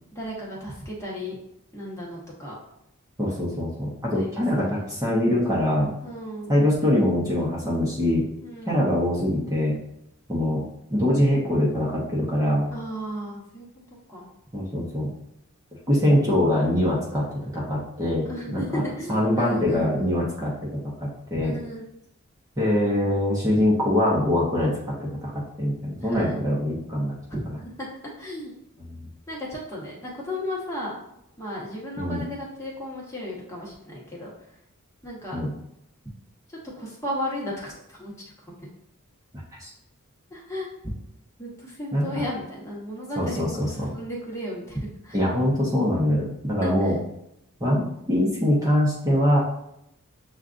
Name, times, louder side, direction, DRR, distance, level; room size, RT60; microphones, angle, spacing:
voice 1, 0.1-1.4 1.7-2.5 4.1-4.3 4.6-4.8 6.0-6.6 8.4-8.9 12.7-13.7 14.1-14.3 18.2-20.1 21.4-21.8 26.0-26.4 27.3-27.4 27.8-27.9 28.2-28.5 29.3-31.0 31.4-34.3 35.0-35.4 36.5-38.3 38.6-38.7 40.3-40.7 41.4-45.2 46.6-46.9, equal, 15° left, -4 dB, 1.1 m, -34 dB
voice 2, 3.2-5.9 6.5-8.2 8.7-9.8 10.3-12.7 14.5-15.1 15.9-18.3 18.5-18.8 19.1-20.5 21.0-21.5 22.6-27.2 28.9-29.1 32.0-32.2 35.3-35.5 39.6-39.7 41.9-42.2 43.2-43.9 45.1-47.0 47.6-49.4, left 1 dB, 15° right, -5 dB, 0.9 m, -23 dB
6.9 x 2.5 x 2.5 m, 0.79 s
head